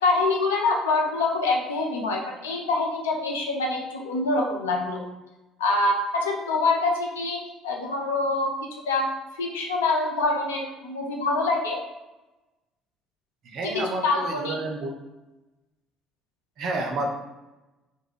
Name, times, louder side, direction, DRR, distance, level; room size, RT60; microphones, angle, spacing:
voice 1, 0.0-5.0 5.6-8.5 8.9-11.8 13.6-14.6, left 3 dB, 85° left, 0 dB, 0.4 m, -25 dB
voice 2, 13.4-14.9 16.6-17.1, right 2 dB, 60° right, 2 dB, 0.4 m, -30 dB
2.2 x 2.1 x 3.3 m, 1.1 s
hypercardioid pair, 55°, 0 cm